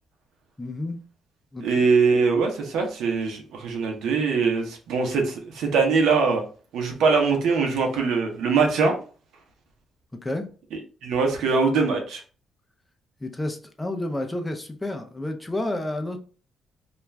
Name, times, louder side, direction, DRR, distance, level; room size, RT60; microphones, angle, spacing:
voice 1, 0.6-1.0 1.5-1.6 10.2-10.5 13.2-16.2, left 1 dB, 15° left, 5 dB, 0.5 m, -30 dB
voice 2, 1.6-6.4 6.7-8.9 11.0-12.2, right 4 dB, 80° right, 2 dB, 0.8 m, -22 dB
2.4 x 2.2 x 3.1 m, 0.39 s
cardioid pair, 90°, 0 cm